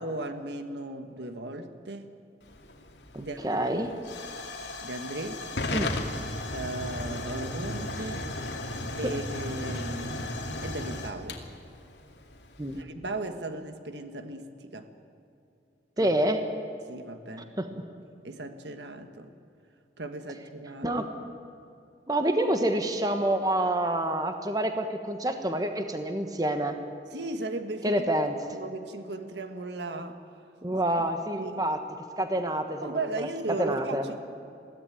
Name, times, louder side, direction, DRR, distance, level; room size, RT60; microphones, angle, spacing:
voice 1, 0.0-2.1 3.2-3.6 4.8-5.4 6.5-8.2 9.0-11.4 12.7-14.9 16.0-16.1 16.9-17.5 18.2-19.3 20.0-21.0 27.1-28.0 28.5-30.2 31.4-31.6 32.8-34.2, right 2 dB, 75° right, 7 dB, 1.5 m, -36 dB
Hiss / Fire / Tick, 2.4-12.8, left 2 dB, 85° left, 2.4 m, -35 dB
voice 2, 3.1-3.9 5.7-5.9 9.0-9.1 12.6-12.8 16.0-16.5 17.6-17.8 20.8-21.1 22.1-26.8 27.8-28.4 30.6-31.8 32.2-34.1, right 1 dB, 20° right, 6 dB, 1.4 m, -27 dB
22.0 x 16.0 x 9.2 m, 2.7 s
head